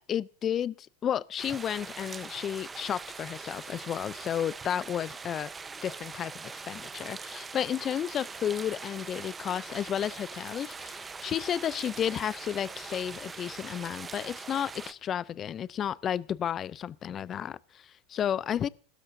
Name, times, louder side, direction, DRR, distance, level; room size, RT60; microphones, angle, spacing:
voice 1, 0.0-5.5 5.8-18.7, left 9 dB, 35° left, 0.5 m, -32 dB
sound 1, 1.4-14.9, right 4 dB, 20° right, 0.9 m, -42 dB
22.0 x 12.5 x 2.7 m
hypercardioid pair, 85°, 0 cm